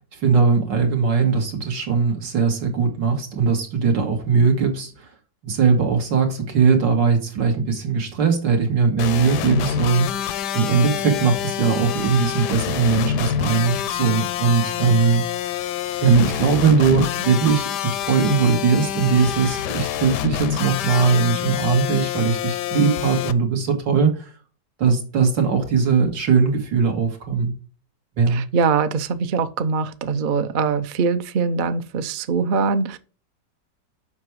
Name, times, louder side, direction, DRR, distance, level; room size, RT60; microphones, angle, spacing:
voice 1, 0.1-5.1 5.4-15.6 16.0-24.3 24.8-27.5 28.2-28.4, right 5 dB, 80° right, 2.4 m, -20 dB
sound 1, 9.0-23.3, left 10 dB, 75° left, 1.2 m, -27 dB
voice 2, 28.3-33.0, right 5 dB, 65° right, 0.5 m, -22 dB
7.3 x 5.9 x 4.7 m
omnidirectional pair, 1.9 m